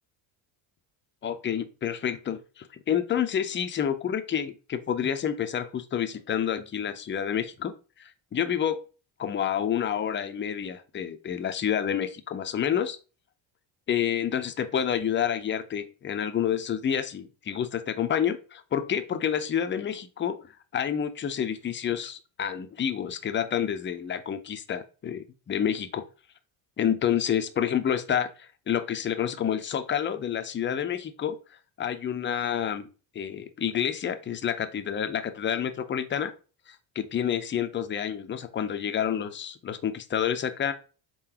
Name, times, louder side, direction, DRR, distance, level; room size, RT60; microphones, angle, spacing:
voice 1, 1.2-8.8 9.2-13.0 13.9-26.0 26.8-31.4 31.8-32.9 33.1-36.3 36.7-40.7, left 9 dB, 25° left, 9 dB, 0.5 m, -29 dB
4.3 x 3.8 x 2.9 m, 0.34 s
supercardioid pair, 95°, 48 cm